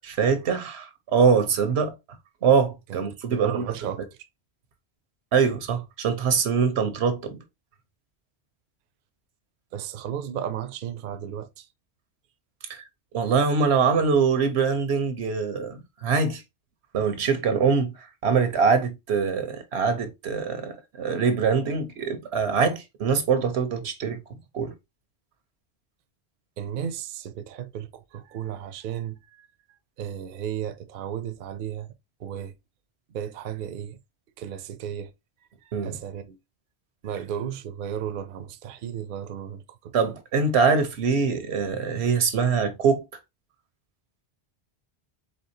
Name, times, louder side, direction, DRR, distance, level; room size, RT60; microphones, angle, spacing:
voice 1, 0.0-1.9 2.4-3.6 5.3-7.4 12.7-12.8 13.1-16.4 16.9-24.2 24.5-24.7 35.7-36.0 39.9-43.1, right 5 dB, 85° right, 1.1 m, -23 dB
voice 2, 3.3-4.0 9.7-11.7 26.6-29.5 30.0-31.9 32.2-32.5 33.1-34.0 34.4-35.1 35.8-36.4 37.0-40.1, right 9 dB, 60° right, 0.7 m, -34 dB
4.2 x 3.5 x 2.7 m
omnidirectional pair, 1.1 m